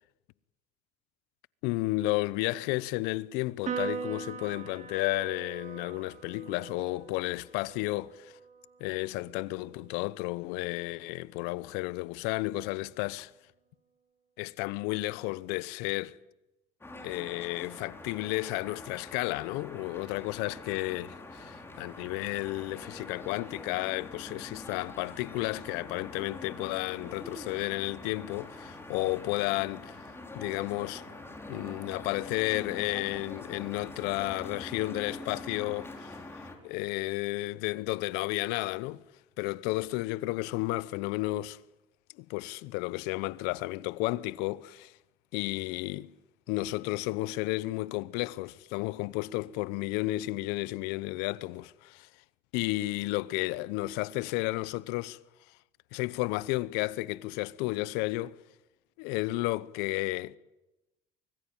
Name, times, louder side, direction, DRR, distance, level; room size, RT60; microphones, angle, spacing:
voice 1, 1.6-8.3 8.8-13.3 14.4-16.2 17.0-30.0 30.3-31.1 31.5-36.2 36.6-39.0 39.4-41.6 42.2-44.9 45.3-46.1 46.5-52.1 52.5-55.2 55.9-58.4 59.0-60.4, left 20 dB, 80° left, 0.8 m, -32 dB
Piano, 3.7-10.3, right 6 dB, 45° right, 4.1 m, -41 dB
sound 1, 16.8-36.6, left 2 dB, 15° left, 5.2 m, -45 dB
24.0 x 21.5 x 8.9 m
supercardioid pair, 90°, 17 cm